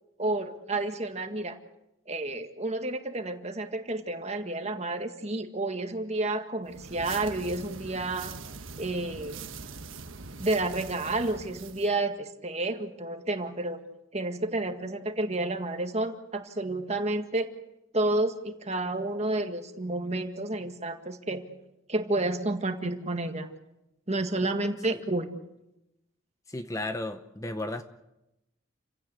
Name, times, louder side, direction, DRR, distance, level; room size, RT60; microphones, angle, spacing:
voice 1, 0.2-1.6 2.1-8.4 8.8-9.4 10.4-13.8 14.1-17.5 17.9-21.4 21.9-23.5 24.1-25.3, right 2 dB, 30° right, 7 dB, 1.8 m, -30 dB
sound 1, 6.7-11.9, right 4 dB, 75° right, 1.4 m, -42 dB
voice 2, 26.5-27.8, left 1 dB, 15° left, 8 dB, 0.8 m, -34 dB
29.0 x 16.5 x 8.2 m, 0.91 s
head